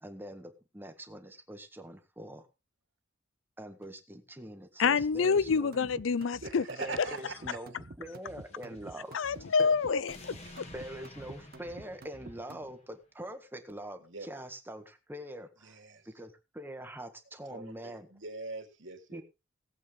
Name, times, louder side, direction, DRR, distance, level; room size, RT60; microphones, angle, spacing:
voice 1, 0.0-2.5 3.6-5.7 6.8-7.7 8.0-9.1 9.6-9.7 10.7-15.8 16.1-18.1 19.1-19.2, right 1 dB, 10° right, 1.7 m, -44 dB
voice 2, 4.8-6.6 9.1-10.2, left 5 dB, 85° left, 0.5 m, -27 dB
sound 1, 5.0-12.7, right 2 dB, 50° right, 1.1 m, -50 dB
voice 3, 6.4-7.6 14.0-14.3 15.6-16.1 17.5-19.2, right 3 dB, 70° right, 2.9 m, -42 dB
sound 2, 8.1-12.9, left 2 dB, 35° left, 2.3 m, -53 dB
18.5 x 8.3 x 3.8 m
head